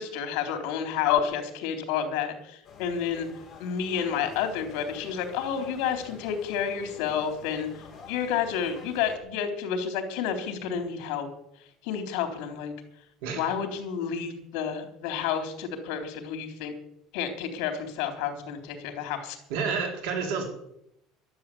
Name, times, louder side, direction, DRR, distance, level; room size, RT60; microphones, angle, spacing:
voice 1, 0.0-3.3 3.6-7.7 8.1-11.3 11.8-12.7 13.4-16.7 17.1-19.4, left 8 dB, 65° left, 5 dB, 3.7 m, -30 dB
sound 1, 2.6-9.2, left 6 dB, 15° left, 4.1 m, -47 dB
voice 2, 13.2-13.5 19.5-20.4, right 5 dB, 85° right, 3 dB, 4.0 m, -29 dB
12.0 x 11.5 x 8.6 m, 0.79 s
cardioid pair, 180°, 0 cm